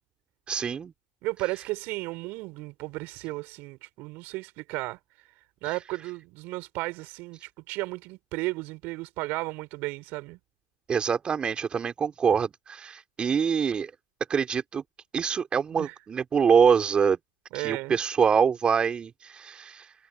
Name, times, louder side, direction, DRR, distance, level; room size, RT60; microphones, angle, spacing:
voice 1, 0.5-0.9 5.7-5.8 10.9-13.9 14.3-14.8 15.1-17.2 17.5-19.9, right 6 dB, 25° right, 3.7 m, -25 dB
voice 2, 1.2-5.0 5.6-10.4 15.7-15.9 17.5-18.0, right 22 dB, 50° right, 4.7 m, -34 dB
hypercardioid pair, 100°, 4 cm